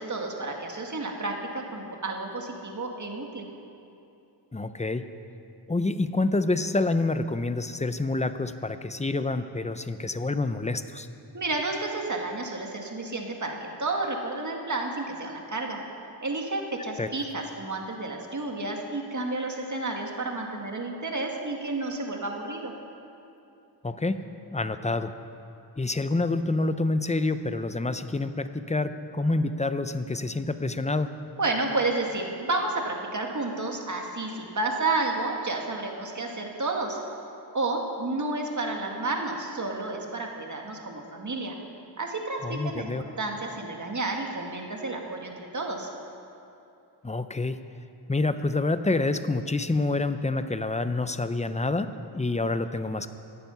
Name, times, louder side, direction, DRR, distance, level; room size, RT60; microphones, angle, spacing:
voice 1, 0.0-3.5 11.3-15.8 16.2-22.7 31.4-37.0 37.5-41.6 42.0-42.9 43.2-45.9, right 2 dB, 45° right, 1 dB, 1.9 m, -31 dB
voice 2, 4.5-5.1 5.7-11.1 17.0-17.1 23.8-24.2 24.5-25.1 25.8-31.1 42.4-43.0 47.0-47.6 48.1-53.1, left 2 dB, 15° left, 10 dB, 0.6 m, -27 dB
17.5 x 12.0 x 5.7 m, 2.7 s
wide cardioid pair, 105°, 42 cm